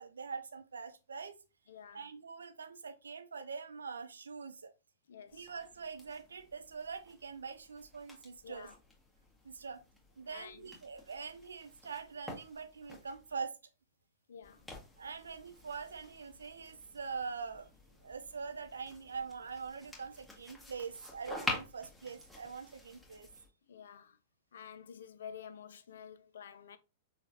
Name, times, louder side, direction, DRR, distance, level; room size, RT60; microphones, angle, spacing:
voice 1, 0.0-1.3 1.9-4.7 5.3-8.7 9.4-9.8 10.2-13.5 15.0-17.7 18.0-23.3, right 5 dB, 70° right, 0.7 m, -44 dB
voice 2, 1.7-2.0 5.1-5.5 8.4-8.8 10.3-10.7 14.3-14.7 23.7-24.2 24.5-26.8, left 8 dB, 65° left, 0.4 m, -50 dB
sound 1, 5.3-13.4 14.4-23.5, left 2 dB, ahead, 1.4 m, -48 dB
5.4 x 2.3 x 2.8 m
figure-of-eight pair, 100°, 0 cm